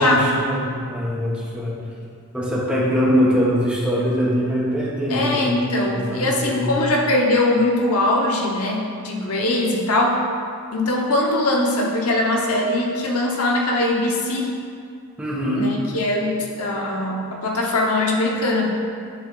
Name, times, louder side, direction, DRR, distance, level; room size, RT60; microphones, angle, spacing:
voice 1, 0.0-1.7 2.3-6.7 15.2-15.7, equal, 5° right, -7 dB, 1.4 m, -22 dB
voice 2, 5.1-10.2 10.7-14.5 15.5-18.7, left 2 dB, 80° left, -1 dB, 1.0 m, -21 dB
11.0 x 3.6 x 3.8 m, 2.2 s
head